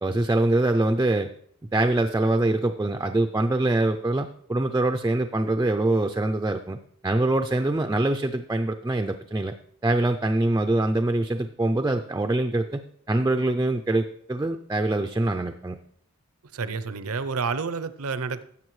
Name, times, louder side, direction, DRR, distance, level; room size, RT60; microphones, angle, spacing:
voice 1, 0.0-1.3 1.7-6.8 7.0-9.5 9.8-12.8 13.1-15.8, right 2 dB, 15° right, 5 dB, 0.4 m, -24 dB
voice 2, 16.5-18.5, right 5 dB, 75° right, 12 dB, 0.6 m, -29 dB
16.5 x 7.2 x 3.1 m, 0.65 s
head